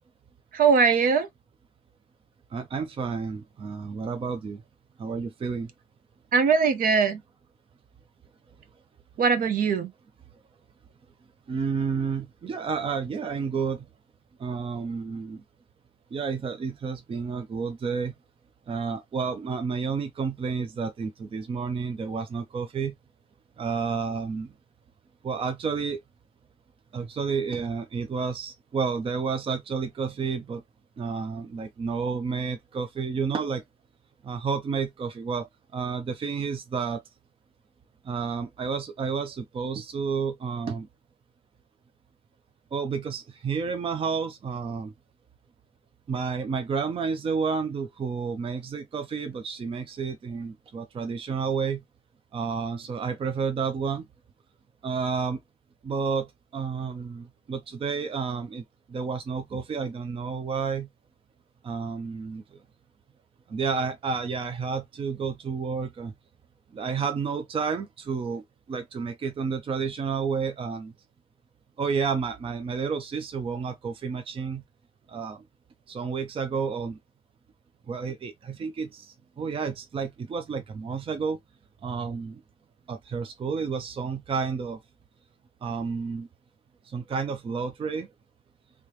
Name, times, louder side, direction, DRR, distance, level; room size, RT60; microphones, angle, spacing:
voice 1, 0.5-1.3 6.3-7.2 9.2-9.9, right 5 dB, 60° right, 0.8 m, -21 dB
voice 2, 2.5-4.6 5.0-5.7 11.5-13.9 14.4-15.4 16.1-18.1 18.7-22.9 23.6-24.5 25.2-26.0 26.9-30.6 31.0-33.6 34.2-35.5 35.7-37.0 38.0-40.9 42.7-44.9 46.1-51.8 52.3-54.1 54.8-55.4 55.8-60.9 61.6-62.6 63.5-66.1 66.7-70.9 71.8-74.6 75.1-75.4 75.9-77.0 77.9-81.4 81.8-82.4 82.9-84.8 85.6-86.3 86.8-88.1, right 5 dB, 35° right, 0.5 m, -30 dB
3.3 x 2.8 x 3.1 m
cardioid pair, 140°, 16 cm